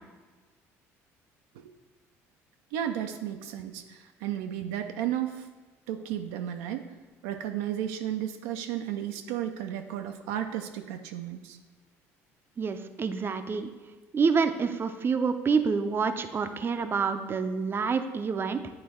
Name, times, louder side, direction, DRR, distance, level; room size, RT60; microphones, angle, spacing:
voice 1, 2.7-5.5 5.9-6.9 7.2-11.6, right 10 dB, 85° right, 6 dB, 0.4 m, -33 dB
voice 2, 12.6-13.7 14.1-18.6, right 5 dB, 35° right, 9 dB, 0.5 m, -27 dB
8.7 x 3.1 x 4.4 m, 1.3 s
supercardioid pair, 75°, 7 cm